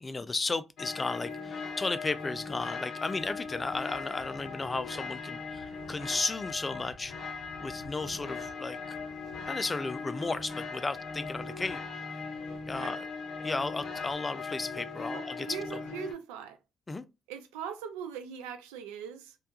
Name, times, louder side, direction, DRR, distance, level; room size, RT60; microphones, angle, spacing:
voice 1, 0.0-7.1 7.6-9.0 9.5-11.8 12.7-13.0 13.4-15.5 16.9-17.0, left 3 dB, 30° left, 0.3 m, -34 dB
sound 1, 0.8-16.1, left 4 dB, 70° left, 0.6 m, -39 dB
voice 2, 15.1-16.6 17.3-19.4, right 8 dB, 85° right, 0.3 m, -41 dB
2.3 x 2.2 x 2.7 m
hypercardioid pair, 45°, 0 cm